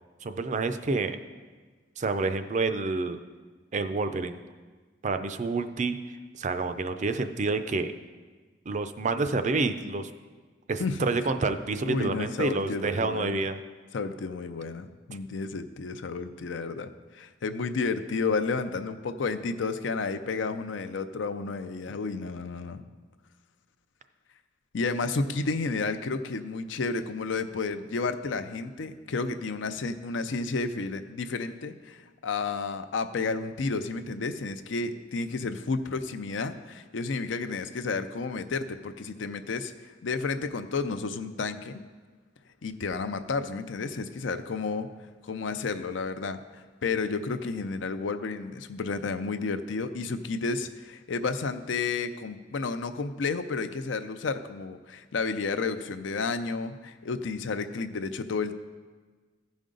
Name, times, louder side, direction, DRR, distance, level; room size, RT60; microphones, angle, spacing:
voice 1, 0.2-1.2 2.0-3.2 3.7-4.4 5.0-6.0 6.3-7.9 8.7-10.1 10.7-13.6, right 3 dB, 40° right, 9 dB, 0.4 m, -28 dB
voice 2, 11.8-13.4 13.9-22.8 24.7-39.7 40.0-41.8 42.6-44.9 45.2-58.5, left 4 dB, 75° left, 10 dB, 0.5 m, -31 dB
15.5 x 5.2 x 3.8 m, 1.4 s
head